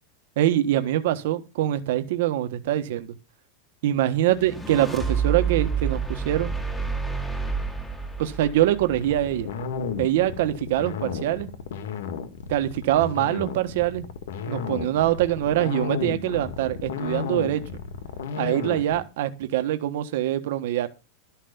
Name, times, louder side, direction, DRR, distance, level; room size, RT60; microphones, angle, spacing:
voice 1, 0.4-3.1 3.8-6.5 8.2-9.5 10.0-11.5 12.5-14.1 14.5-17.6 18.4-20.9, right 13 dB, 55° right, 9 dB, 1.4 m, -24 dB
sound 1, 4.2-9.6, right 5 dB, 5° left, 1.9 m, -29 dB
sound 2, 8.9-19.0, left 6 dB, 85° left, 1.9 m, -33 dB
13.0 x 5.8 x 6.9 m, 0.28 s
supercardioid pair, 180°, 0 cm